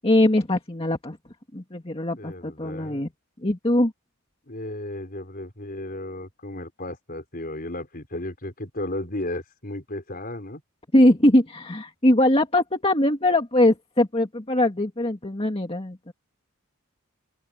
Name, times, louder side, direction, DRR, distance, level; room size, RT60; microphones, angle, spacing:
voice 1, 0.0-1.2 1.5-3.1 3.4-3.9 10.9-16.1, left 1 dB, 25° left, 2.1 m, -21 dB
voice 2, 2.1-3.0 4.5-10.6, left 1 dB, 40° left, 5.0 m, -34 dB
open air
head